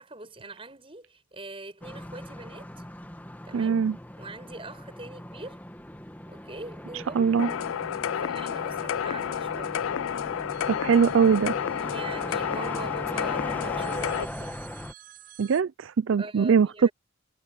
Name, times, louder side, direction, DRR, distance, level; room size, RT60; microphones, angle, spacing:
voice 1, 0.0-2.8 3.4-3.8 4.2-5.6 6.3-9.8 11.8-14.6 16.2-16.9, right 2 dB, 25° right, 6.7 m, -43 dB
sound 1, 1.8-14.9, left 1 dB, 10° left, 1.7 m, -39 dB
voice 2, 3.5-4.0 7.1-7.5 10.7-11.6 15.4-16.9, right 6 dB, 80° right, 0.4 m, -22 dB
sound 2, 7.4-14.2, left 8 dB, 90° left, 0.4 m, -30 dB
sound 3, 10.5-12.8 13.8-15.6, right 13 dB, 45° right, 5.3 m, -52 dB
head